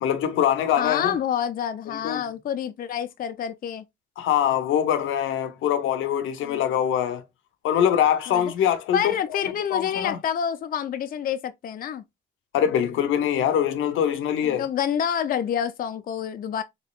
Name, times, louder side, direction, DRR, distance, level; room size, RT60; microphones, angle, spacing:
voice 1, 0.0-1.2 2.0-2.2 4.2-7.2 7.6-9.1 9.7-10.2 12.5-14.6, left 9 dB, 85° left, 0.7 m, -23 dB
voice 2, 0.8-3.8 6.4-6.6 8.3-8.5 8.9-12.0 14.4-16.6, left 9 dB, 45° left, 0.4 m, -28 dB
4.1 x 3.0 x 2.3 m
cardioid pair, 90°, 20 cm